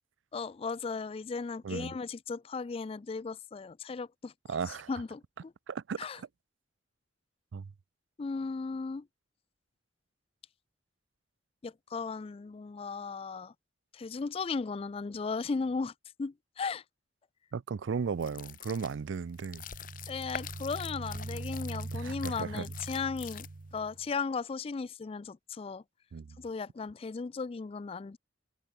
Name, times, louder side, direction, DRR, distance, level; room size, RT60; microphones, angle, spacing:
voice 1, 0.3-4.3 4.7-5.5 6.0-6.2 8.2-9.1 11.6-13.5 13.9-15.9 16.2-16.8 20.1-23.5 23.7-25.8 26.4-28.2, left 4 dB, 30° left, 0.3 m, -36 dB
voice 2, 4.5-4.9 5.7-6.3 7.5-7.7 17.5-19.6 21.9-22.6 26.1-26.4, right 5 dB, 85° right, 0.4 m, -36 dB
sound 1, 18.1-23.8, left 9 dB, 45° left, 0.9 m, -46 dB
sound 2, 19.4-24.1, right 2 dB, 60° right, 0.7 m, -42 dB
head